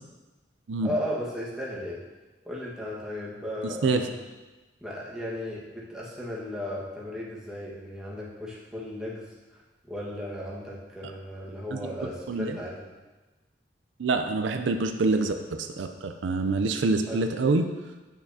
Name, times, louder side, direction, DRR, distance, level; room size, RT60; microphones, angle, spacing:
voice 1, 0.8-2.0 2.4-4.2 4.8-9.3 9.5-9.6 9.9-12.9 17.1-17.2, left 1 dB, 5° right, -6 dB, 1.4 m, -35 dB
voice 2, 14.0-17.7, right 3 dB, 90° right, 7 dB, 0.5 m, -26 dB
8.5 x 6.0 x 2.7 m, 1.2 s
head